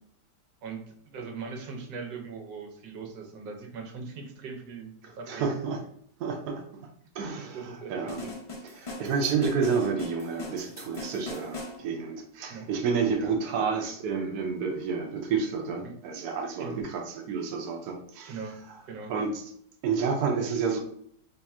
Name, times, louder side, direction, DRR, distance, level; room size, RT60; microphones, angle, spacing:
voice 1, 0.6-5.5 7.5-8.3 12.5-12.7 13.2-13.4 15.8-15.9 16.6-16.8 18.3-18.6 18.9-19.1, right 5 dB, 90° right, 3 dB, 1.4 m, -40 dB
voice 2, 5.0-5.8 6.2-6.6 7.1-8.2 8.8-18.4 18.7-18.8 19.1-19.4 19.8-20.8, right 5 dB, 70° right, 3 dB, 1.1 m, -30 dB
sound 1, 8.1-11.8, left 2 dB, 45° left, 0.4 m, -40 dB
3.4 x 2.4 x 4.2 m, 0.66 s
omnidirectional pair, 1.8 m